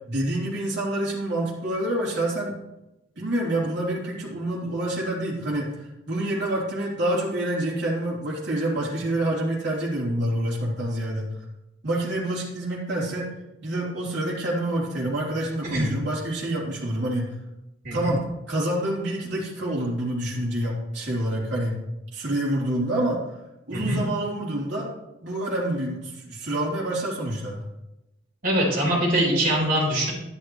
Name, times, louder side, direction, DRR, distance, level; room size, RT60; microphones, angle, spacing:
voice 1, 0.1-2.5 3.2-11.3 11.8-13.3 13.6-17.3 17.9-21.8 22.1-23.2 23.7-24.9 25.2-27.6, right 1 dB, 65° right, -6 dB, 3.2 m, -27 dB
voice 2, 17.8-18.2 23.7-24.0 28.4-30.1, right 1 dB, 50° right, -4 dB, 4.2 m, -23 dB
11.0 x 10.5 x 3.1 m, 0.94 s
head